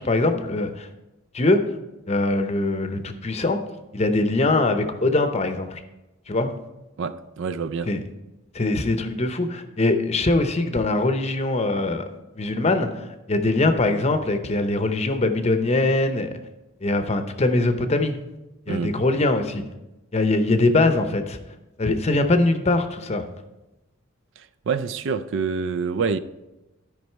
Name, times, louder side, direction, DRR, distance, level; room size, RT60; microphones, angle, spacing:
voice 1, 0.1-0.9 1.3-1.6 2.1-3.6 3.9-5.8 6.3-6.5 7.9-8.0 8.5-12.0 12.3-16.3 16.8-18.2 18.7-19.6 20.1-21.4 21.8-23.2, left 2 dB, 30° left, 0.7 m, -22 dB
voice 2, 7.0-7.9 18.7-19.0 24.4-26.2, right 5 dB, 60° right, 0.4 m, -27 dB
12.5 x 5.3 x 4.5 m
head